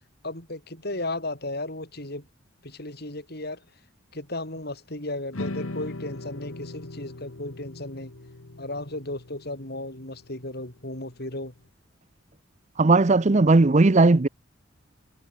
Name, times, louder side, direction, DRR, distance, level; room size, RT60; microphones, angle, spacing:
voice 1, 0.2-2.3 2.6-3.6 4.1-8.1 8.6-11.5, left 2 dB, 50° left, 6.4 m, -35 dB
sound 1, 5.3-11.6, left 2 dB, 85° left, 1.6 m, -40 dB
voice 2, 12.8-14.3, right 3 dB, 35° right, 0.6 m, -17 dB
head